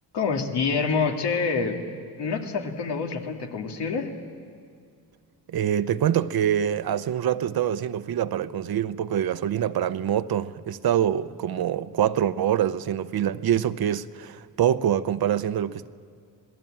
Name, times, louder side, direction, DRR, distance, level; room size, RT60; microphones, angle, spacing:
voice 1, 0.1-1.8 2.2-4.1, left 5 dB, 90° left, 2.2 m, -26 dB
voice 2, 5.5-15.9, right 10 dB, 65° right, 0.8 m, -25 dB
27.0 x 19.0 x 8.8 m
wide cardioid pair, 130°, 39 cm